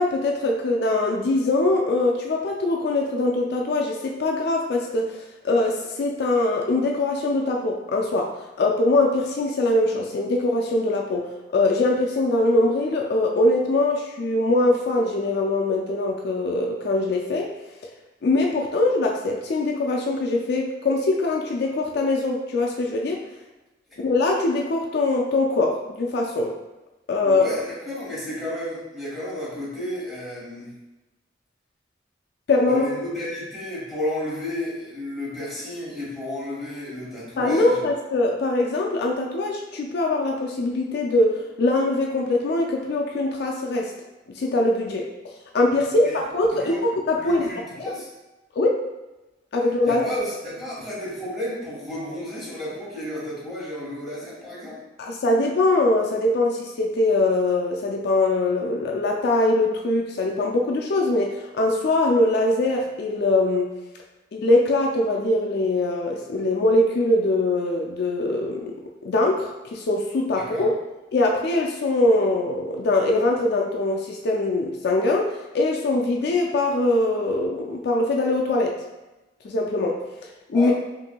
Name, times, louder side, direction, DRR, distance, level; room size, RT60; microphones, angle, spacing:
voice 1, 0.0-17.5 18.2-23.2 24.0-26.5 27.1-27.5 32.5-32.9 37.4-43.9 44.3-46.7 47.1-47.5 47.8-47.9 48.6-48.9 49.5-50.0 55.0-63.7 64.3-68.7 69.0-70.7 71.1-78.8 79.4-80.0 80.5-80.7, left 2 dB, 60° left, 0 dB, 0.4 m, -22 dB
voice 2, 27.2-30.7 32.7-37.8 45.9-46.2 46.5-46.8 47.1-48.1 49.8-54.8 70.3-70.7 80.5-80.7, left 1 dB, ahead, -8 dB, 1.4 m, -32 dB
5.7 x 2.5 x 2.2 m, 1.0 s
head